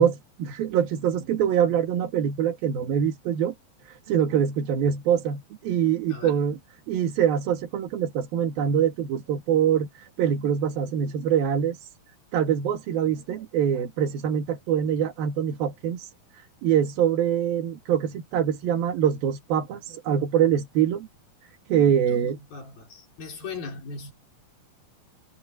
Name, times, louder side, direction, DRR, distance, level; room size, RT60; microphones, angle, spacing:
voice 1, 0.0-3.5 3.9-6.6 6.9-11.9 12.3-16.1 16.6-21.1 21.7-22.4, right 9 dB, 85° right, 3.8 m, -24 dB
voice 2, 6.1-6.4 22.0-24.1, left 4 dB, 80° left, 7.0 m, -39 dB
omnidirectional pair, 4.1 m